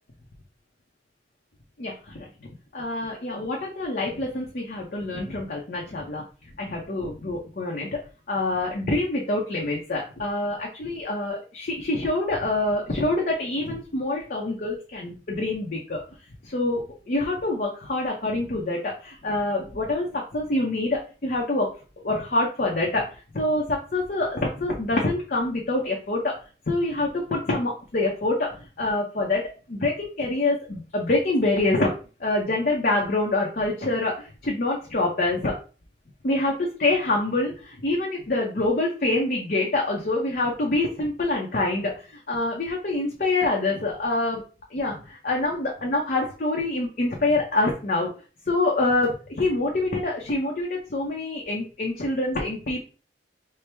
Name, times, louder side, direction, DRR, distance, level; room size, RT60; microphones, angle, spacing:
voice 1, 1.8-2.3 2.7-6.2 6.6-8.0 8.3-16.0 16.4-21.7 22.0-23.0 23.3-26.4 26.7-31.9 32.2-35.5 36.2-44.4 44.7-48.1 48.5-52.8, left 2 dB, 50° left, -2 dB, 0.6 m, -26 dB
4.4 x 2.1 x 3.3 m, 0.36 s
head